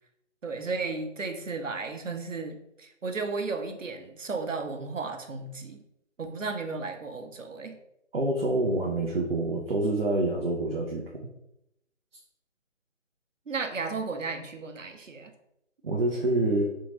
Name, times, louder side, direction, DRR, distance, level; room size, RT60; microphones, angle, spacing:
voice 1, 0.4-5.8 6.2-7.8 13.5-15.3, right 4 dB, 85° right, 6 dB, 0.8 m, -34 dB
voice 2, 8.1-11.3 15.8-16.8, right 2 dB, 50° right, -1 dB, 0.7 m, -27 dB
3.6 x 2.9 x 3.9 m, 0.82 s
figure-of-eight pair, 155°, 37 cm